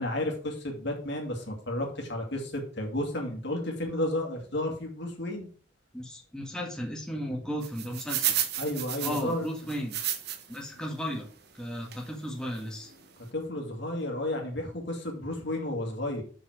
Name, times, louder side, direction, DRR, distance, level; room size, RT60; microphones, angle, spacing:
voice 1, 0.0-5.5 8.6-9.5 13.3-16.2, left 1 dB, 60° left, 2 dB, 2.5 m, -32 dB
voice 2, 5.9-8.4 9.0-9.9 10.5-11.3 11.5-12.9, equal, 5° left, -1 dB, 1.8 m, -35 dB
sound 1, 7.6-10.6 11.1-11.2 11.9-12.1 12.6-12.7 12.9-13.0, right 10 dB, 55° right, 1.2 m, -32 dB
7.3 x 6.5 x 5.0 m, 0.43 s
head